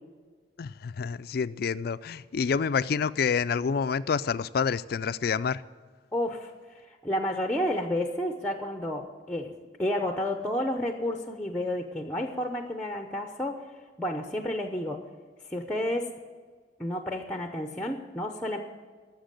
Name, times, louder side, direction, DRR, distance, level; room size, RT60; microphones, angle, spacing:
voice 1, 0.6-5.6, left 6 dB, 55° left, 0.4 m, -28 dB
voice 2, 6.1-9.5 9.8-13.6 14.0-15.0 15.5-16.1 16.8-18.6, left 1 dB, 5° left, 0.7 m, -31 dB
13.0 x 7.4 x 9.0 m
head